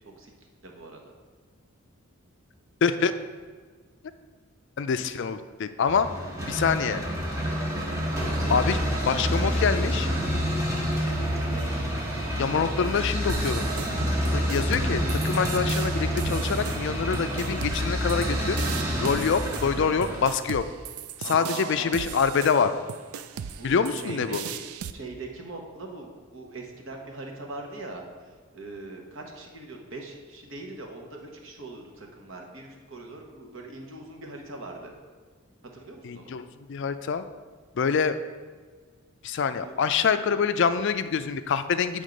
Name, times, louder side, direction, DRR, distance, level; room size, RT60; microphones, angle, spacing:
voice 1, 0.6-1.0 10.7-11.9 21.2-22.1 23.5-24.6 24.9-34.9 35.7-36.3 39.6-39.8 40.2-40.4 40.8-40.9, right 2 dB, 60° right, 1 dB, 1.1 m, -41 dB
voice 2, 2.8-3.1 4.8-6.1 6.5-7.0 8.5-8.8 9.0-10.1 12.4-13.7 14.3-18.6 19.0-20.6 21.2-22.7 23.6-24.4 36.0-37.2 37.8-38.2 39.2-42.0, left 6 dB, 55° left, 11 dB, 0.3 m, -25 dB
sound 1, 5.9-20.2, equal, 15° right, 1.2 m, -28 dB
sound 2, 13.3-24.9, right 8 dB, 80° right, 0.4 m, -38 dB
9.3 x 3.6 x 5.1 m, 1.5 s
head